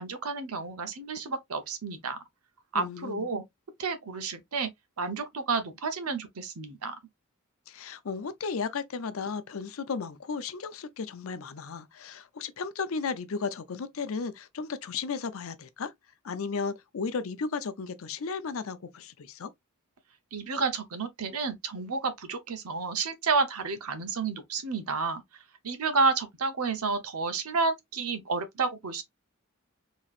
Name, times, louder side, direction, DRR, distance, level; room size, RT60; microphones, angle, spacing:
voice 1, 0.0-2.2 2.7-3.4 3.8-4.7 5.0-7.0 20.3-25.2 25.6-29.0, right 4 dB, 85° right, 0.9 m, -30 dB
voice 2, 2.7-3.3 7.7-15.9 16.2-19.5, left 5 dB, 70° left, 0.5 m, -34 dB
4.1 x 3.0 x 2.4 m
head